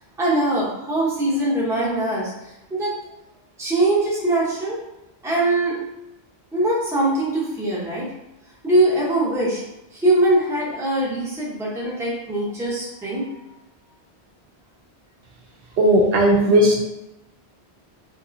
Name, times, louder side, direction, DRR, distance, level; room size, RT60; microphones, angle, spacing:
voice 1, 0.2-2.3 2.7-3.0 3.6-4.8 5.2-5.8 6.5-8.1 8.6-9.6 9.9-13.3, right 1 dB, 5° right, -6 dB, 0.6 m, -22 dB
voice 2, 15.8-16.8, right 1 dB, 75° right, 0 dB, 0.8 m, -16 dB
3.0 x 2.7 x 2.5 m, 0.91 s
omnidirectional pair, 1.1 m